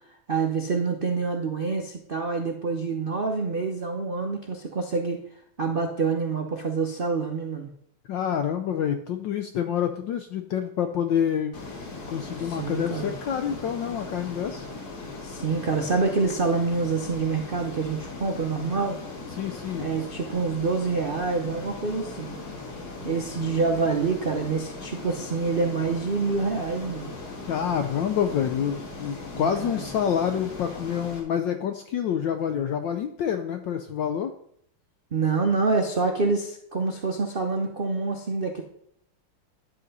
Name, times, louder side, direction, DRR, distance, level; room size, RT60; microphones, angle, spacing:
voice 1, 0.3-5.2 5.6-7.7 12.4-13.1 15.2-19.0 19.8-22.4 23.0-27.1 29.3-29.8 35.1-38.6, right 4 dB, 80° right, 3 dB, 0.5 m, -27 dB
voice 2, 8.1-11.6 12.1-14.7 19.3-19.9 23.4-23.5 27.5-34.3, left 8 dB, 70° left, 7 dB, 1.2 m, -27 dB
Ocean, 11.5-31.2, left 3 dB, 50° left, 2.3 m, -39 dB
10.5 x 7.8 x 4.0 m, 0.68 s
omnidirectional pair, 2.4 m